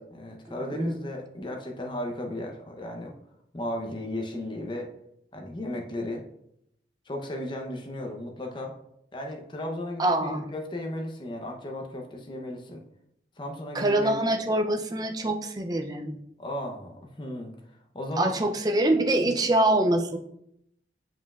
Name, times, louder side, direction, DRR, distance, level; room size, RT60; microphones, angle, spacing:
voice 1, 0.1-3.1 3.5-4.9 5.3-6.2 7.1-8.7 9.1-12.8 13.4-14.1 16.4-16.9 17.2-17.5 17.9-18.4, left 1 dB, 25° left, 2 dB, 0.7 m, -35 dB
voice 2, 10.0-10.5 13.7-16.2 18.2-20.2, right 1 dB, 20° right, 5 dB, 0.5 m, -24 dB
7.5 x 5.4 x 2.4 m, 0.76 s
head